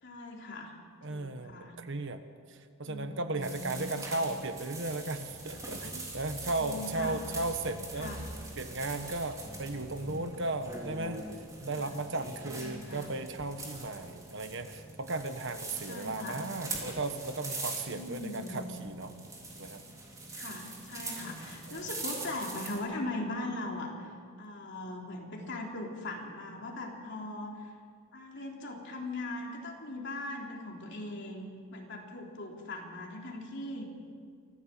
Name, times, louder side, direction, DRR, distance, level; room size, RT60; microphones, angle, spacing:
voice 1, 0.0-0.7 1.1-1.7 2.8-3.9 6.4-7.2 8.0-8.3 9.4-10.2 11.7-12.0 12.6-13.1 15.9-16.4 17.9-18.7 20.3-24.1 24.4-27.7 28.1-33.9, left 2 dB, 55° left, 0 dB, 3.4 m, -40 dB
voice 2, 1.0-2.2 2.5-8.3 8.6-11.2 11.6-19.1 19.5-19.8 21.7-21.9, right 2 dB, 55° right, 8 dB, 1.3 m, -36 dB
sound 1, 3.4-22.8, right 2 dB, 15° right, 3.1 m, -43 dB
24.5 x 16.0 x 7.6 m, 2.1 s
head